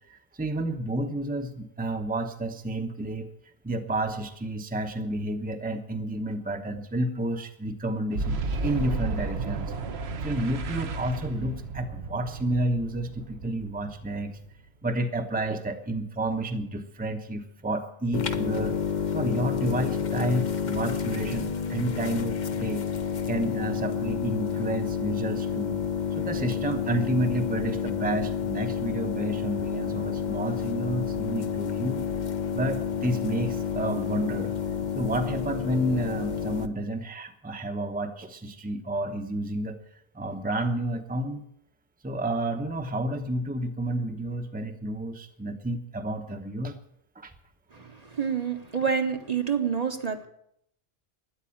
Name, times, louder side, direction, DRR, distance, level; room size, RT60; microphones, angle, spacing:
voice 1, 0.1-3.3 3.6-9.7 10.2-14.4 14.8-18.8 19.1-22.9 23.3-25.8 26.1-32.0 32.5-34.5 34.9-39.8 40.1-41.4 42.0-46.8 47.2-47.3, right 1 dB, 10° right, 6 dB, 0.9 m, -30 dB
Boom, 8.1-14.7, right 4 dB, 75° right, 1.2 m, -33 dB
sound 1, 18.1-36.7, left 7 dB, 50° left, 0.8 m, -30 dB
voice 2, 47.7-50.3, right 7 dB, 40° right, 6 dB, 1.1 m, -28 dB
13.0 x 9.8 x 8.6 m, 0.75 s
omnidirectional pair, 1.1 m